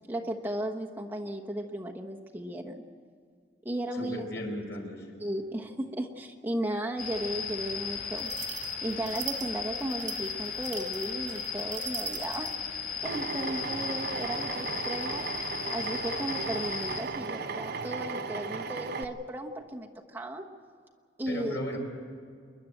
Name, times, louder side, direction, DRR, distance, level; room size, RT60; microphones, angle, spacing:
voice 1, 0.1-2.7 3.6-4.3 5.2-8.3 8.8-12.5 13.0-15.3 15.7-20.5 21.2-21.6, right 1 dB, 10° right, 1 dB, 1.2 m, -35 dB
voice 2, 3.9-5.1 21.3-21.8, left 1 dB, 75° left, 0 dB, 5.6 m, -36 dB
sound 1, 7.0-17.0, left 6 dB, 60° left, 4.7 m, -36 dB
sound 2, 8.2-12.6, right 12 dB, 80° right, 2.1 m, -41 dB
Drill, 13.0-19.0, right 4 dB, 60° right, 0.9 m, -36 dB
28.0 x 11.5 x 9.1 m, 2.1 s
head